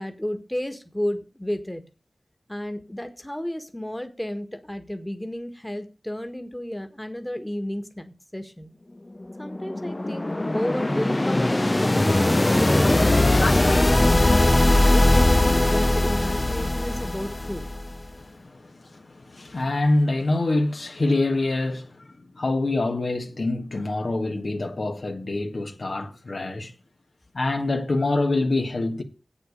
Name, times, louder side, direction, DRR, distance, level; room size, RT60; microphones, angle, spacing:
voice 1, 0.0-1.8 2.5-8.7 9.4-12.1 12.5-14.6 14.9-17.7, left 1 dB, 10° left, 1.6 m, -32 dB
sound 1, 9.2-18.0, left 1 dB, 25° left, 0.6 m, -20 dB
voice 2, 13.4-13.8 18.1-26.7 27.3-29.0, left 2 dB, 65° left, 1.6 m, -26 dB
8.2 x 8.1 x 6.6 m
wide cardioid pair, 60°, 0 cm